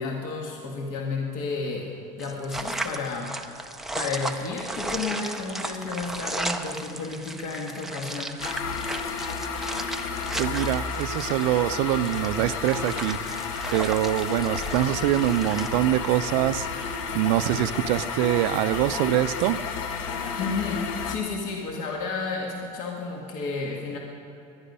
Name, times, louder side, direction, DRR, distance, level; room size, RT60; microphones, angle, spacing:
voice 1, 0.0-1.9 2.2-3.7 3.9-8.4 20.4-24.0, left 4 dB, 50° left, 0 dB, 1.7 m, -32 dB
sound 1, 2.2-15.7, right 2 dB, ahead, 0.4 m, -35 dB
sound 2, 8.4-21.2, left 5 dB, 80° left, 1.3 m, -31 dB
voice 2, 10.4-19.6, right 14 dB, 65° right, 12 dB, 0.5 m, -24 dB
20.5 x 11.0 x 5.5 m, 2.9 s
cardioid pair, 170°, 17 cm